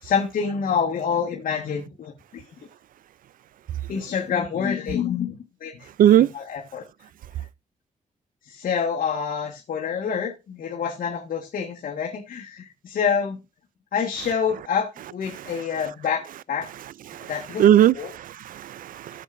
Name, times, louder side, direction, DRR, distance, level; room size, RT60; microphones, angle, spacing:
voice 1, 0.0-2.4 3.9-5.9 6.3-6.8 8.5-13.4 13.9-16.7 17.3-17.6 17.9-18.1, left 7 dB, 75° left, 1.5 m, -27 dB
voice 2, 17.6-19.2, right 11 dB, 75° right, 0.4 m, -19 dB
13.5 x 7.3 x 2.5 m
cardioid pair, 85°, 14 cm